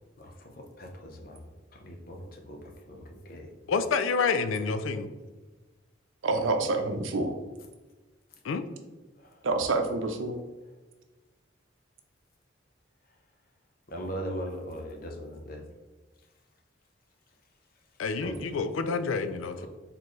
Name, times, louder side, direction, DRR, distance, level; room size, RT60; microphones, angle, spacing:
voice 1, 0.8-1.4 1.8-2.6 2.9-3.0 3.3-3.5 13.9-15.6 18.2-18.3, equal, 50° left, 2 dB, 0.7 m, -38 dB
voice 2, 3.7-5.1 8.4-8.6 18.0-19.7, left 4 dB, 90° left, 10 dB, 0.4 m, -28 dB
voice 3, 6.2-7.3 9.4-10.4, right 3 dB, 85° right, 5 dB, 0.6 m, -27 dB
4.4 x 3.8 x 3.1 m, 1.2 s
head